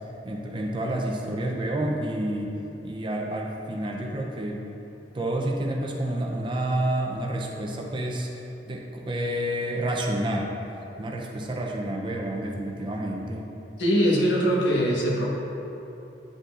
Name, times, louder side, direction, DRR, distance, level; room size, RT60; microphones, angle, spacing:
voice 1, 0.2-2.5 2.8-4.7 5.1-10.5 11.0-13.5, right 1 dB, 25° right, 0 dB, 0.6 m, -29 dB
voice 2, 13.8-15.3, equal, 85° left, -4 dB, 1.4 m, -22 dB
9.7 x 5.1 x 2.5 m, 3.0 s
head